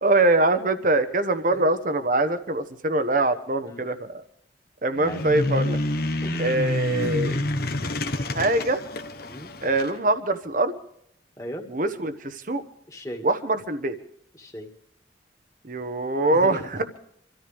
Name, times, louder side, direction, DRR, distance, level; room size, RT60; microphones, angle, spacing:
voice 1, 0.0-4.2 4.8-5.8 6.4-7.4 8.3-8.8 9.6-10.7 11.7-12.6 13.2-13.9 15.6-17.0, right 2 dB, 45° right, 10 dB, 1.2 m, -23 dB
sound 1, 4.9-9.9, left 1 dB, 50° left, 1.2 m, -28 dB
voice 2, 11.4-11.7 12.9-13.3 14.3-14.7 16.3-16.6, equal, 20° left, 1 dB, 2.2 m, -37 dB
26.5 x 14.0 x 3.6 m, 0.70 s
head